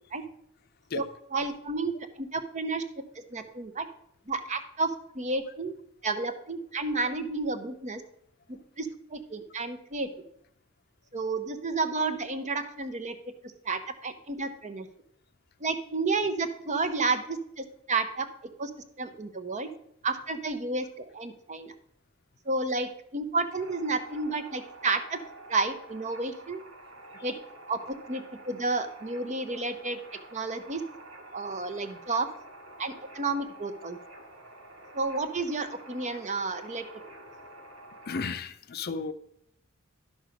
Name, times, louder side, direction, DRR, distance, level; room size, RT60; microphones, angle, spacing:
voice 1, 1.3-2.8 3.3-3.9 4.3-5.7 6.0-8.0 8.5-10.1 11.1-13.2 13.4-14.9 15.6-18.3 18.6-18.7 19.0-19.7 20.0-21.7 22.4-25.2 25.5-26.6 27.2-27.3 27.7-30.0 30.3-30.8 31.3-32.3 32.8-34.0 34.9-36.8, right 3 dB, 35° right, 9 dB, 0.8 m, -31 dB
sound 1, 23.6-38.3, right 1 dB, 85° right, 2.0 m, -49 dB
voice 2, 38.1-39.1, left 4 dB, 50° left, 11 dB, 0.6 m, -33 dB
11.0 x 6.2 x 5.1 m, 0.71 s
head